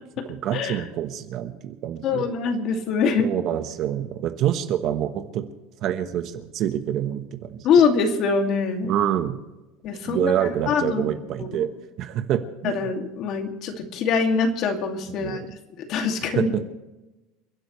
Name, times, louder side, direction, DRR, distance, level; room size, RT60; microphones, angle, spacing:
voice 1, 0.2-2.3 3.2-5.4 5.8-7.7 8.8-9.4 10.0-11.7 12.0-12.9 15.1-15.5 16.3-16.7, right 10 dB, 40° right, 8 dB, 1.2 m, -26 dB
voice 2, 2.0-3.3 7.6-8.9 9.8-10.3 10.7-11.1 11.4-11.5 12.6-15.4 15.8-16.5, left 5 dB, 40° left, 4 dB, 2.3 m, -23 dB
29.5 x 11.5 x 3.2 m, 1.0 s
cardioid pair, 155°, 0 cm